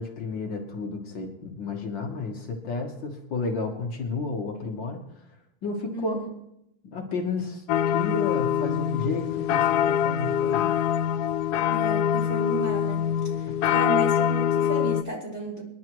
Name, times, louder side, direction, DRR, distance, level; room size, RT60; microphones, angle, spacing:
voice 1, 0.0-5.0 5.6-6.2 6.9-10.7 13.5-13.8, left 3 dB, 60° left, 2 dB, 1.9 m, -32 dB
voice 2, 5.9-6.2 11.6-13.1 13.7-15.6, right 3 dB, 25° right, -3 dB, 3.0 m, -33 dB
sound 1, 7.7-15.0, left 9 dB, 85° left, 0.8 m, -24 dB
26.0 x 11.0 x 3.0 m, 0.81 s
omnidirectional pair, 2.4 m